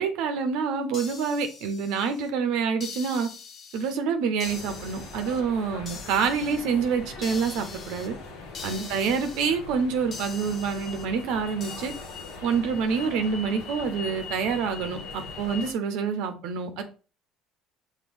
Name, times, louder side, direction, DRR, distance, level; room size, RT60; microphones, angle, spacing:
voice 1, 0.0-3.3 3.7-8.1 8.6-11.9 12.4-16.8, right 6 dB, 70° right, 0.6 m, -27 dB
sound 1, 0.9-2.3 2.8-4.0 4.4-5.4 5.9-6.7 7.2-8.1 8.5-9.5 10.1-11.1 11.6-12.4, left 5 dB, 45° left, 0.7 m, -42 dB
sound 2, 4.4-15.7, left 3 dB, 70° left, 1.0 m, -40 dB
6.0 x 2.2 x 3.5 m
hypercardioid pair, 60°, 0 cm